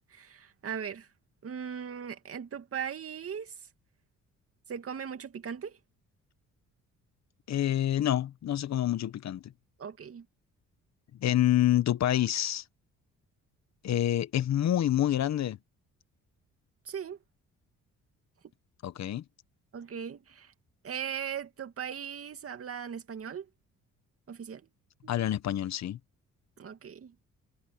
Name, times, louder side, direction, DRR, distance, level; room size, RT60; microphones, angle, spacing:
voice 1, 0.1-1.1 1.4-3.5 4.7-5.8 9.8-10.3 16.9-17.2 19.7-20.5 20.8-23.5 24.3-24.6 26.6-27.1, right 7 dB, 50° right, 2.4 m, -38 dB
voice 2, 7.5-9.5 11.2-12.6 13.8-15.6 18.8-19.2 25.1-26.0, left 12 dB, 65° left, 1.2 m, -27 dB
cardioid pair, 90°, 30 cm